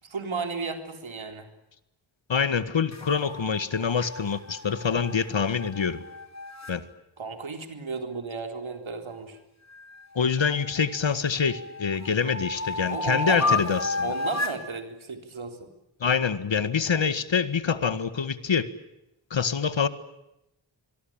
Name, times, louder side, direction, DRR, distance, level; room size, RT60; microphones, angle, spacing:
voice 1, 0.0-1.5 7.2-9.4 12.9-13.6 14.0-15.7, right 4 dB, 80° right, 6 dB, 4.0 m, -34 dB
voice 2, 2.3-6.0 6.7-6.8 10.2-14.1 16.0-18.7 19.3-19.9, left 6 dB, 70° left, 13 dB, 1.9 m, -25 dB
sound 1, 2.9-6.8 9.7-10.9 11.4-14.6, left 3 dB, 35° left, 4.6 m, -32 dB
25.5 x 22.5 x 8.9 m, 0.90 s
cardioid pair, 45°, 46 cm